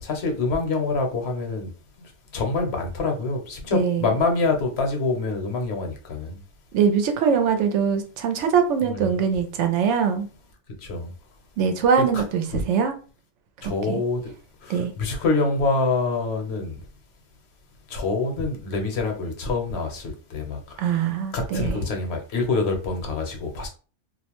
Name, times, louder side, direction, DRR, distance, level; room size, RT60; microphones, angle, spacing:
voice 1, 0.0-1.7 2.3-6.4 8.8-9.2 10.8-11.1 12.1-12.2 12.5-12.6 13.6-14.3 14.6-16.7 17.9-20.6 21.3-23.7, left 3 dB, 65° left, 0.9 m, -26 dB
voice 2, 3.7-4.1 6.7-10.3 11.6-12.9 13.9-14.0 14.7-14.9 20.8-21.8, right 7 dB, 80° right, 0.9 m, -22 dB
2.4 x 2.1 x 2.9 m
omnidirectional pair, 1.2 m